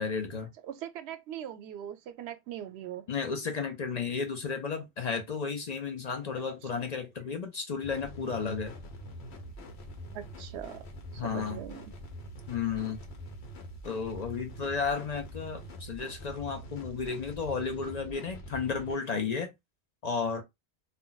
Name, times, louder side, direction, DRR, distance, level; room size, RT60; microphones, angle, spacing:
voice 1, 0.0-0.5 3.1-8.7 11.2-11.6 12.5-13.0 13.8-19.5 20.0-20.4, left 5 dB, 50° left, 0.5 m, -33 dB
voice 2, 0.7-3.1 6.3-6.4 6.7-6.9 10.1-10.8 11.1-11.9, right 10 dB, 90° right, 0.8 m, -41 dB
sound 1, 7.8-19.0, equal, 80° left, 1.1 m, -45 dB
2.5 x 2.1 x 3.8 m
omnidirectional pair, 1.1 m